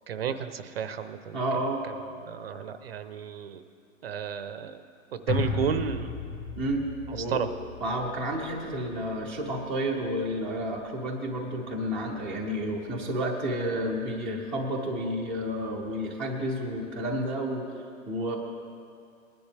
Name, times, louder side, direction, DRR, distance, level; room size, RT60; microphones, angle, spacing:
voice 1, 0.1-1.4 1.9-2.0 2.3-3.6 4.0-4.8 5.1-6.2 7.1-7.5, right 7 dB, 45° right, 10 dB, 0.7 m, -32 dB
voice 2, 1.3-1.8 6.5-6.8 7.1-7.5 7.8-17.7 18.1-18.4, equal, ahead, -4 dB, 0.7 m, -30 dB
sound 1, 5.3-9.7 10.1-10.2, left 4 dB, 30° left, 2.3 m, -35 dB
20.0 x 10.5 x 3.3 m, 2.4 s
hypercardioid pair, 155°, 41 cm